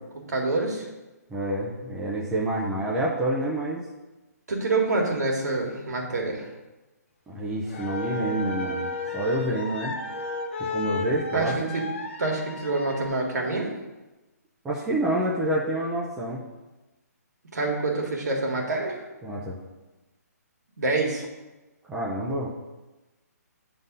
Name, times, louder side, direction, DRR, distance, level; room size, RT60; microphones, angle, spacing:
voice 1, 0.3-0.9 4.5-6.5 11.3-11.8 12.2-13.7 17.5-19.0 20.8-21.3, right 3 dB, 75° right, 0 dB, 2.0 m, -26 dB
voice 2, 1.3-3.9 7.3-10.0 10.6-11.6 14.6-16.4 19.2-19.6 21.9-22.5, right 1 dB, 5° right, -6 dB, 0.5 m, -28 dB
sound 1, 7.7-13.1, left 3 dB, 45° left, 0.7 m, -33 dB
7.7 x 3.8 x 5.4 m, 1.1 s
hypercardioid pair, 165°, 9 cm